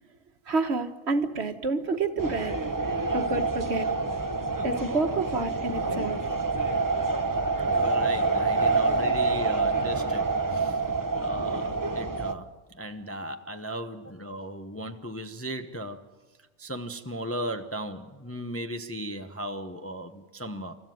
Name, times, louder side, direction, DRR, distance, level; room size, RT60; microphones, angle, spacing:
voice 1, 0.5-2.5 3.1-3.9 4.6-6.2, right 3 dB, 55° right, 1.6 m, -28 dB
sound 1, 2.2-12.3, right 3 dB, 20° right, 0.8 m, -27 dB
voice 2, 7.6-10.8 11.2-16.1 16.6-20.8, right 1 dB, 15° left, 0.7 m, -36 dB
28.0 x 14.5 x 9.2 m
omnidirectional pair, 1.3 m